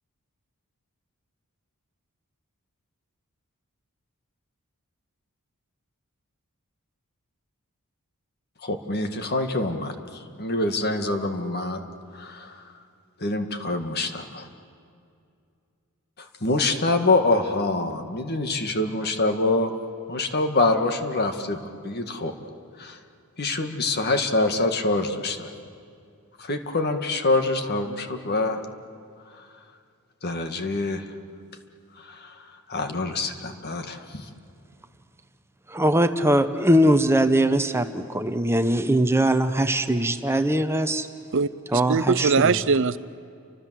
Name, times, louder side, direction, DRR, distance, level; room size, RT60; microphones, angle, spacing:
voice 1, 8.6-11.8 12.1-12.6 13.2-14.5 16.2-19.7 20.1-22.3 22.8-23.0 23.4-25.5 26.4-28.6 29.3-29.5 30.2-31.0 31.9-34.3, left 2 dB, 45° left, 6 dB, 1.8 m, -25 dB
voice 2, 35.7-41.1 41.7-42.6, right 1 dB, 10° right, 9 dB, 0.8 m, -21 dB
voice 3, 41.3-43.0, right 5 dB, 60° right, 15 dB, 0.6 m, -22 dB
29.5 x 25.0 x 7.6 m, 2.4 s
head